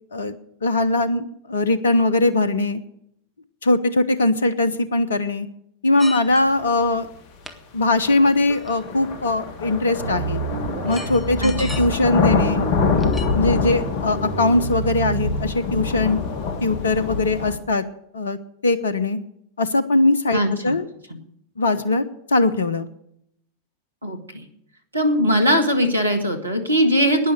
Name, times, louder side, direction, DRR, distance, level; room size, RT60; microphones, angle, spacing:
voice 1, 0.1-2.8 3.6-5.5 5.8-7.1 7.7-10.4 10.9-12.6 13.3-16.2 16.6-17.8 18.1-18.4 18.6-19.2 19.6-20.8 21.6-22.9, left 2 dB, 70° left, 15 dB, 0.8 m, -20 dB
sound 1, 6.0-6.6 7.4-7.6 8.5-9.0 10.4-10.5 10.9-12.0 12.9-13.3, left 2 dB, 5° left, 1.6 m, -36 dB
sound 2, 7.0-7.1 8.0-17.6, left 5 dB, 45° left, 1.7 m, -26 dB
sound 3, 10.0-12.0 12.4-13.7 14.1-15.7, right 4 dB, 65° right, 2.2 m, -29 dB
voice 2, 11.4-11.8 20.3-20.7 24.0-24.4 24.9-27.3, equal, 80° right, 7 dB, 1.8 m, -20 dB
12.0 x 10.0 x 6.6 m, 0.73 s
figure-of-eight pair, 90°, 0 cm